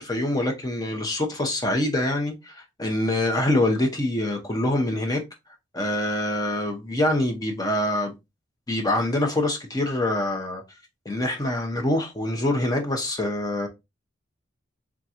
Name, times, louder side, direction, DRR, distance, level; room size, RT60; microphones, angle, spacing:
voice 1, 0.0-5.2 5.7-8.1 8.7-10.6 11.0-13.7, left 1 dB, 20° left, 0.8 m, -25 dB
3.7 x 3.6 x 2.8 m
head